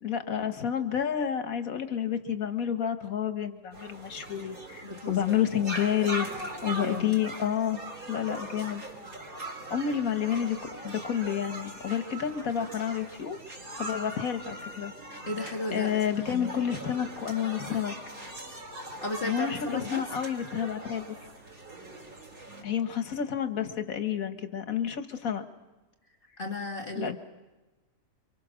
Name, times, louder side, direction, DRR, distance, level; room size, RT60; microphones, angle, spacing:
voice 1, 0.0-6.3 6.6-7.8 8.1-8.8 9.7-10.6 10.8-13.4 13.8-14.9 15.7-17.9 19.2-21.2 22.6-25.4 26.9-27.1, left 9 dB, 80° left, 8 dB, 1.8 m, -30 dB
sound 1, 3.7-22.6, right 1 dB, 90° right, 5.2 m, -41 dB
voice 2, 4.8-5.3 6.7-7.2 15.3-16.5 19.0-20.1 26.4-27.1, left 2 dB, 40° left, 3 dB, 1.9 m, -34 dB
29.0 x 24.5 x 6.3 m, 1.1 s
omnidirectional pair, 1.5 m